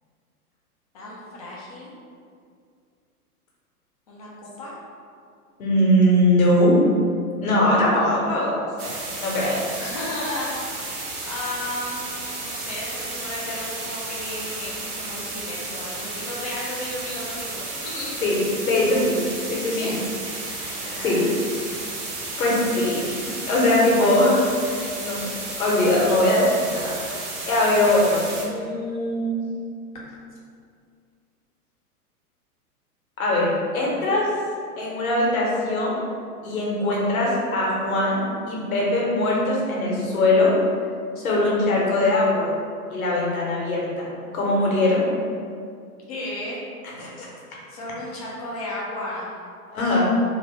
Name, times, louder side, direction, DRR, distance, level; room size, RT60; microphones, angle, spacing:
voice 1, 0.9-1.9 4.1-4.3 4.6-4.7 9.8-12.1 12.4-18.2 19.7-20.0 20.7-21.3 46.1-46.6 47.7-49.3, left 1 dB, 25° left, -5 dB, 0.4 m, -34 dB
voice 2, 5.6-6.7 7.4-9.6 18.2-18.4 18.6-19.9 20.6-21.2 22.4-25.2 25.5-29.4 33.2-34.3 34.8-36.0 36.4-40.5 41.2-42.5 42.9-44.1 44.3-45.0 47.0-47.3 49.7-50.1, left 1 dB, 65° left, -4 dB, 1.1 m, -21 dB
sound 1, 8.8-28.4, right 2 dB, 35° right, 0.7 m, -33 dB
2.8 x 2.5 x 3.1 m, 2.3 s
figure-of-eight pair, 105°, 46 cm